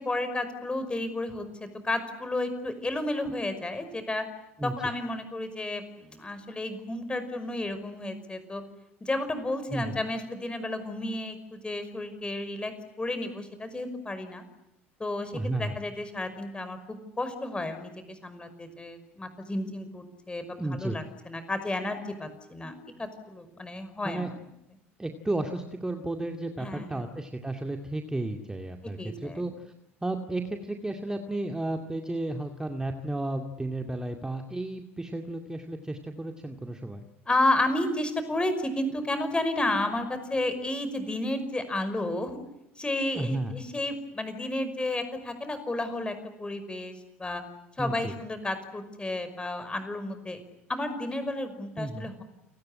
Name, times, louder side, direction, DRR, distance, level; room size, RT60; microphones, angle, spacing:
voice 1, 0.0-4.3 4.6-8.6 9.0-12.7 13.0-14.4 15.0-15.3 15.6-22.7 23.0-24.3 26.6-27.0 29.0-29.4 37.3-42.4 42.8-47.4 47.8-50.4 50.7-52.2, left 2 dB, 15° left, 10 dB, 5.4 m, -32 dB
voice 2, 9.7-10.0 15.3-15.8 20.6-21.0 24.0-24.3 25.0-29.7 30.0-37.0 43.1-43.6 47.8-48.1 51.8-52.1, right 2 dB, 10° right, 4 dB, 2.3 m, -33 dB
29.5 x 19.0 x 9.9 m, 0.89 s
figure-of-eight pair, 65°, 7 cm